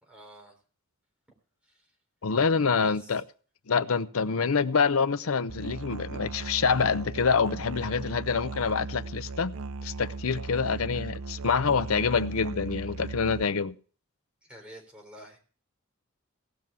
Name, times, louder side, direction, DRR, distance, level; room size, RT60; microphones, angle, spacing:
voice 1, 0.0-0.5 1.6-1.9 2.7-3.2 14.4-15.4, equal, 5° right, 3.9 m, -48 dB
voice 2, 2.2-3.2 3.7-9.5 9.8-13.7, left 5 dB, 75° left, 0.7 m, -26 dB
Musical instrument, 5.5-13.4, right 3 dB, 90° right, 0.6 m, -38 dB
17.5 x 6.1 x 6.9 m
head